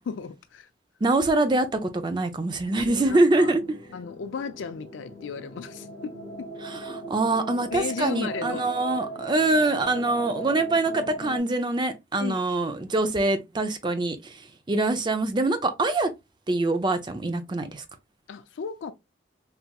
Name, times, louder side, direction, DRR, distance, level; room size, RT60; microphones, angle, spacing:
voice 1, 0.1-0.7 2.8-3.5 3.9-6.5 7.7-8.6 12.2-12.4 18.3-18.9, left 6 dB, 80° left, 0.4 m, -35 dB
voice 2, 1.0-3.6 6.6-16.1 16.5-17.8, right 2 dB, 25° right, 0.5 m, -24 dB
sound 1, 2.7-11.4, right 2 dB, 20° left, 1.5 m, -39 dB
3.3 x 2.9 x 2.2 m
head